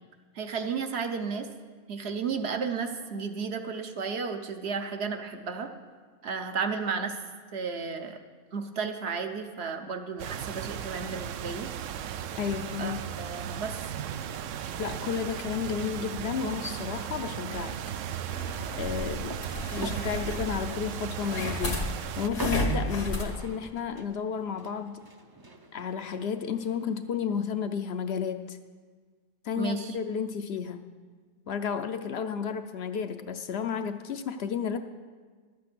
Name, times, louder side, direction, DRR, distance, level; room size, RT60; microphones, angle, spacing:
voice 1, 0.3-1.5 1.9-5.7 6.2-7.1 7.5-8.2 8.5-11.7 12.8-13.8 19.7-20.0 29.6-29.9, right 5 dB, 60° right, 6 dB, 1.0 m, -33 dB
sound 1, 10.2-22.3, right 9 dB, 90° right, 0.9 m, -36 dB
voice 2, 12.4-13.1 14.8-17.8 18.8-19.4 19.8-21.8 22.2-25.0 25.7-28.6 29.4-30.9 31.5-34.8, left 7 dB, 65° left, 8 dB, 0.8 m, -32 dB
sound 2, 14.5-27.4, right 3 dB, 30° right, 0.5 m, -46 dB
sound 3, 18.3-23.3, left 1 dB, 85° left, 1.9 m, -33 dB
12.0 x 8.5 x 6.0 m, 1.5 s
omnidirectional pair, 1.3 m